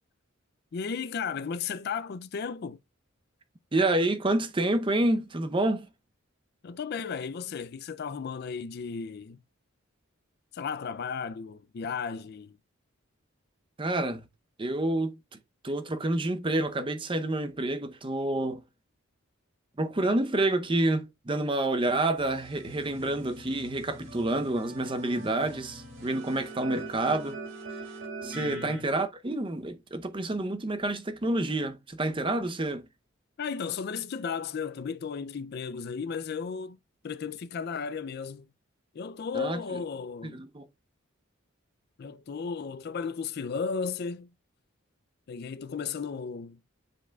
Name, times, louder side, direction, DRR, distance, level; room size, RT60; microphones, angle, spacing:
voice 1, 0.7-2.8 6.6-9.4 10.5-12.6 28.3-28.9 33.4-36.8 37.0-38.5 38.9-40.4 42.0-44.3 45.3-46.6, left 6 dB, 50° left, 0.4 m, -34 dB
voice 2, 3.7-5.9 13.8-14.3 14.6-15.2 15.6-18.6 19.8-27.4 28.2-32.9 39.3-39.8 40.3-40.7, right 2 dB, 25° right, 0.7 m, -28 dB
sound 1, 22.2-28.8, right 2 dB, 65° right, 2.6 m, -43 dB
10.0 x 4.8 x 2.3 m
head